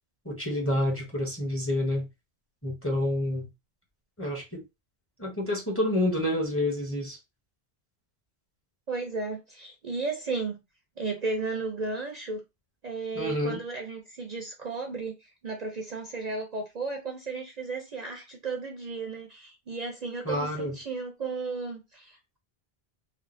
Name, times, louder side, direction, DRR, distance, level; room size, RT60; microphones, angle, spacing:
voice 1, 0.2-2.1 2.6-3.5 4.2-4.6 5.2-7.2 13.1-13.6 20.2-20.8, left 1 dB, 15° left, 0.9 m, -28 dB
voice 2, 8.9-10.6 11.0-12.4 12.8-22.4, right 3 dB, 50° right, 0.6 m, -34 dB
3.4 x 2.1 x 2.5 m
omnidirectional pair, 1.0 m